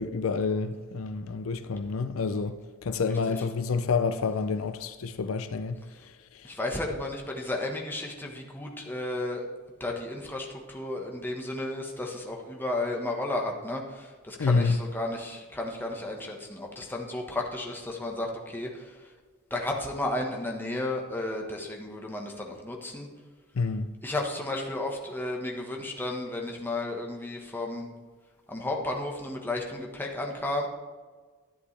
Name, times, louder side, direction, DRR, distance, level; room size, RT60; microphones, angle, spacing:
voice 1, 0.0-2.6 2.8-5.8 14.4-14.8 23.6-23.9, left 4 dB, 75° left, 0.5 m, -28 dB
voice 2, 6.4-9.4 9.8-18.9 19.5-23.1 24.0-27.9 28.5-30.7, left 2 dB, 10° left, 1.2 m, -33 dB
11.5 x 9.8 x 3.3 m
head